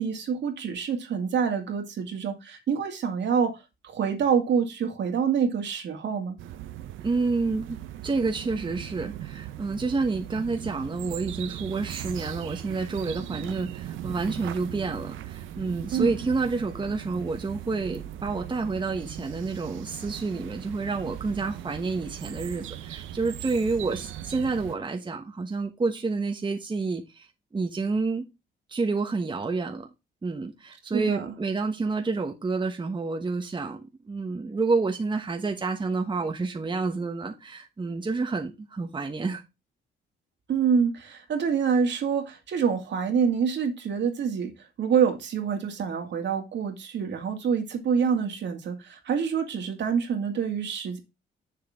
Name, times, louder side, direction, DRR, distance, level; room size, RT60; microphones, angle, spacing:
voice 1, 0.0-6.4 15.9-16.1 30.9-31.3 40.5-44.5 44.8-51.0, right 6 dB, 65° right, 2.2 m, -26 dB
sound 1, 6.4-24.8, right 12 dB, 85° right, 0.8 m, -39 dB
voice 2, 7.0-27.3 27.5-28.2 28.7-29.9 30.2-39.4, right 3 dB, 25° right, 1.2 m, -29 dB
7.6 x 6.8 x 3.6 m
cardioid pair, 90°, 20 cm